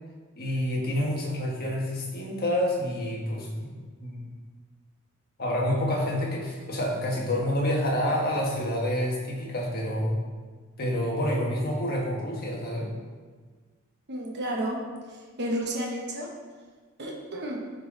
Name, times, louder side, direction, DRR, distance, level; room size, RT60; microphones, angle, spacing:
voice 1, 0.4-3.7 4.0-4.2 5.4-10.2 10.8-12.9, left 1 dB, 45° left, -2 dB, 1.5 m, -28 dB
voice 2, 14.1-14.8 15.1-16.3 17.0-17.6, right 1 dB, 50° right, -1 dB, 1.1 m, -31 dB
11.0 x 3.9 x 3.8 m, 1.5 s
head